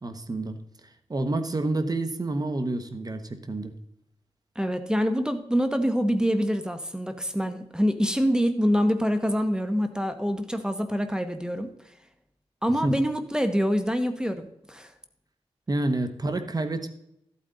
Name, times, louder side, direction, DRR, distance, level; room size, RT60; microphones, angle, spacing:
voice 1, 0.0-3.7 12.8-13.0 15.7-16.9, right 2 dB, 35° right, 8 dB, 1.2 m, -29 dB
voice 2, 4.5-11.7 12.6-14.9, equal, 5° right, 8 dB, 1.1 m, -25 dB
14.0 x 8.5 x 3.9 m, 0.78 s
wide cardioid pair, 75°, 11 cm